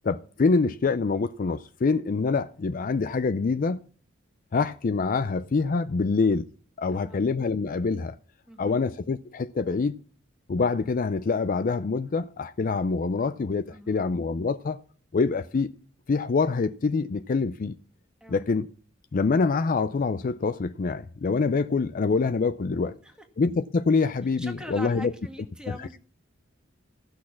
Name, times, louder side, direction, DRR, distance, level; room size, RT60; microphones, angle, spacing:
voice 1, 0.0-3.8 4.5-6.5 6.8-8.1 8.6-10.0 10.5-14.8 15.1-15.7 16.1-17.7 18.3-18.7 19.1-22.9 23.4-25.1, left 4 dB, 45° left, 0.4 m, -25 dB
voice 2, 6.9-7.2 8.5-8.8 13.7-14.1 18.2-18.4 22.7-23.3 24.4-26.0, equal, 5° right, 1.5 m, -43 dB
14.5 x 6.4 x 5.8 m
head